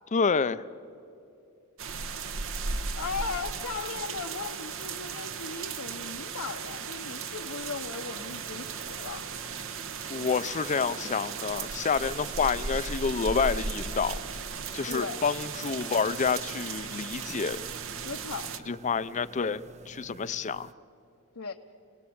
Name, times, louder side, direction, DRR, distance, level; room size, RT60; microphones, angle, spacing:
voice 1, 0.1-0.6 10.1-14.2 14.7-17.6 18.7-20.7, left 5 dB, 35° left, 14 dB, 0.5 m, -28 dB
sound 1, 1.8-18.6, right 5 dB, 65° right, 1.1 m, -36 dB
voice 2, 2.9-9.3 14.9-15.2 18.0-18.5 21.4-21.5, left 5 dB, 75° left, 3 dB, 1.0 m, -37 dB
sound 2, 8.1-20.7, right 2 dB, 30° right, 0.6 m, -50 dB
28.0 x 18.5 x 8.7 m, 2.6 s
head